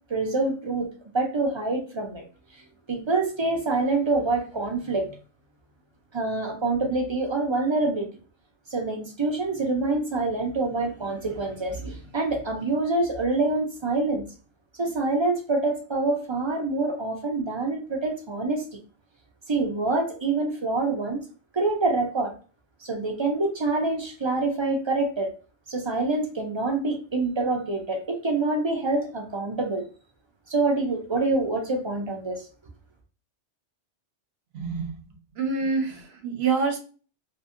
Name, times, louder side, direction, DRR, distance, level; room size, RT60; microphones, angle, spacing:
voice 1, 0.1-0.9 1.1-2.2 2.9-5.2 6.1-8.1 8.7-14.3 14.8-18.6 19.5-21.2 21.5-22.3 22.8-25.3 25.7-29.9 30.5-32.4, right 3 dB, 40° right, 0.4 m, -26 dB
voice 2, 34.5-34.9 35.4-36.8, right 4 dB, 65° right, 0.9 m, -26 dB
2.8 x 2.6 x 2.5 m
omnidirectional pair, 1.2 m